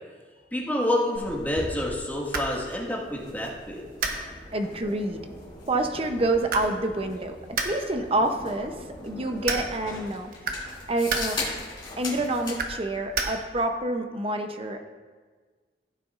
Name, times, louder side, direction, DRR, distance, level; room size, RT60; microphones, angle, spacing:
voice 1, 0.5-3.9, left 1 dB, 10° left, -4 dB, 1.8 m, -28 dB
sound 1, 1.1-12.6, left 2 dB, 30° left, 2.8 m, -40 dB
light switch, 1.7-13.8, right 4 dB, 55° right, 1.1 m, -36 dB
voice 2, 4.5-5.2 5.7-8.7 9.0-10.3 10.6-11.4 12.0-14.8, right 2 dB, 35° right, 5 dB, 0.8 m, -27 dB
15.5 x 9.1 x 2.6 m, 1.5 s
head